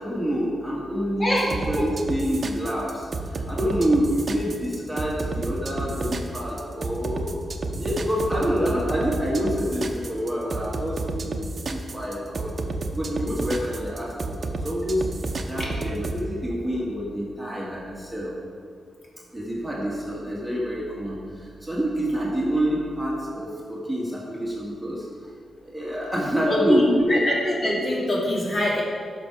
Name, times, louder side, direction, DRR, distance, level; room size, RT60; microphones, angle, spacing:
voice 1, 0.0-7.4 7.8-12.5 12.9-15.1 15.5-18.3 19.3-25.1 25.6-27.3, equal, ahead, -5 dB, 2.1 m, -27 dB
voice 2, 1.2-1.5 1.8-1.9 7.7-7.8 15.6-15.7 26.5-26.8 27.1-28.8, left 1 dB, 35° left, -5 dB, 2.7 m, -24 dB
sound 1, 1.5-16.2, right 3 dB, 45° right, 0.8 m, -30 dB
11.0 x 6.1 x 4.8 m, 2.1 s
cardioid pair, 85°, 0 cm